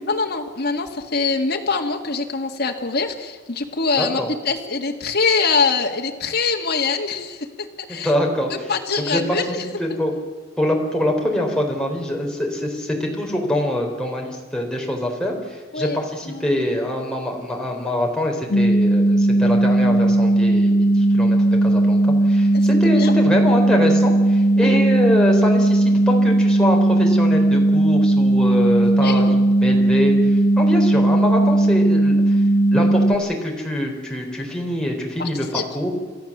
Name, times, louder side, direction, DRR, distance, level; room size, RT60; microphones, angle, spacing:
voice 1, 0.1-4.2 4.5-8.1 8.5-9.6 15.7-16.5 22.5-22.6 23.0-23.1 24.6-24.8 29.0-29.4 35.2-35.6, left 4 dB, 55° left, 2 dB, 1.9 m, -24 dB
voice 2, 4.0-4.3 7.9-8.7 9.1-9.4 9.8-10.2 10.6-32.4 32.7-35.9, left 1 dB, 5° left, -1 dB, 3.9 m, -24 dB
sound 1, 18.5-33.2, right 1 dB, 80° left, 1.6 m, -17 dB
29.5 x 13.0 x 7.4 m, 1.4 s
head